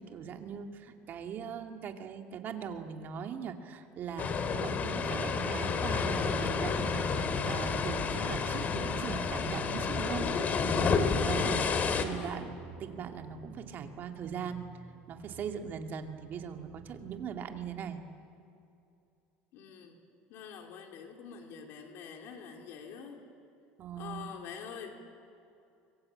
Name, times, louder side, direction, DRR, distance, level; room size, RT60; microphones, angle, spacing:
voice 1, 0.0-10.9 11.2-11.6 12.0-12.4 12.8-14.7 15.1-18.0 23.8-24.3, right 7 dB, 45° right, 5 dB, 2.3 m, -40 dB
sound 1, 4.2-12.0, left 5 dB, 35° left, 2.5 m, -30 dB
sound 2, 4.8-17.2, right 6 dB, 65° right, 3.0 m, -50 dB
voice 2, 11.4-12.6 19.5-20.0 20.3-23.3 24.0-25.0, left 7 dB, 60° left, 3 dB, 3.4 m, -46 dB
25.0 x 23.5 x 8.8 m, 2.6 s
supercardioid pair, 120°, 5 cm